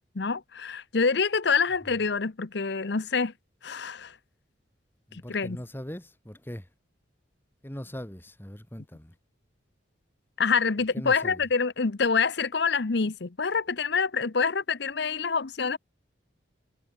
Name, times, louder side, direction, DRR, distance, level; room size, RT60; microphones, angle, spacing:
voice 1, 0.1-3.3 3.6-4.1 5.1-5.6 10.4-15.8, left 5 dB, 60° left, 0.8 m, -26 dB
voice 2, 5.1-6.7 7.6-9.1 10.9-11.4, equal, 10° left, 1.6 m, -40 dB
head